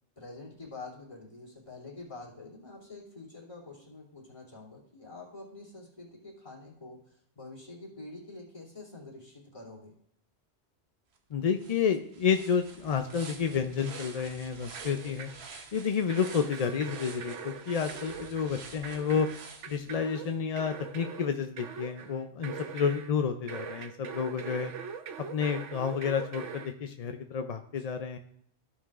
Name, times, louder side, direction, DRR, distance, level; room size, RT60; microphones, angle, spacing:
voice 1, 0.2-9.9 22.6-22.8 27.7-28.0, left 3 dB, 25° left, -3 dB, 2.8 m, -47 dB
sound 1, 11.2-11.3 11.6-20.3, right 4 dB, 65° right, 1.2 m, -49 dB
voice 2, 11.3-15.3 15.7-19.3 19.7-24.7 25.3-28.2, left 6 dB, 50° left, 6 dB, 0.4 m, -30 dB
sound 2, 13.8-14.5 14.8-15.5 16.1-23.2 23.5-26.7, right 6 dB, 85° right, 1.1 m, -42 dB
15.0 x 5.6 x 2.4 m, 0.71 s
omnidirectional pair, 1.2 m